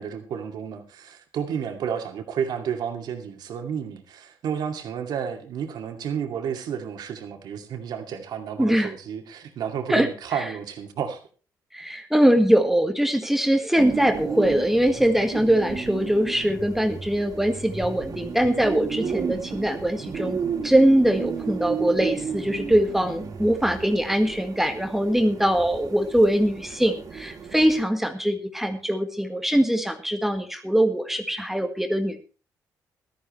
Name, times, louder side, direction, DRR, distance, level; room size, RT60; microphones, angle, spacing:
voice 1, 0.0-11.2, right 8 dB, 75° right, 4 dB, 2.3 m, -31 dB
voice 2, 8.6-8.9 9.9-10.1 10.3-10.5 11.7-20.4 20.6-32.2, right 1 dB, 5° right, 6 dB, 1.6 m, -22 dB
sound 1, 13.8-27.8, right 6 dB, 55° right, 2.6 m, -33 dB
16.0 x 13.0 x 3.2 m, 0.36 s
cardioid pair, 100°, 7 cm